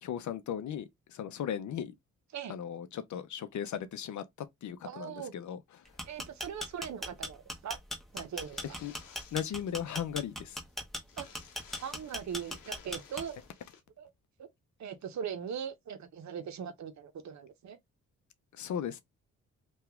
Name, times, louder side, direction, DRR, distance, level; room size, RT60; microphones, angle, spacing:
voice 1, 0.0-1.9 2.5-4.3 4.6-5.6 8.8-8.9 9.3-10.6 18.5-19.0, left 9 dB, 60° left, 0.6 m, -37 dB
voice 2, 4.8-5.3 6.1-7.8 8.1-8.8 11.2-11.3 11.8-13.4 14.0-14.1 14.4-14.5 14.8-17.8, right 8 dB, 55° right, 0.8 m, -40 dB
sound 1, 5.9-13.5, left 1 dB, ahead, 1.0 m, -39 dB
sound 2, 8.1-10.1 10.3-10.4 10.7-10.8 11.0-13.8, left 7 dB, 90° left, 0.8 m, -56 dB
2.8 x 2.3 x 3.5 m
supercardioid pair, 55°, 33 cm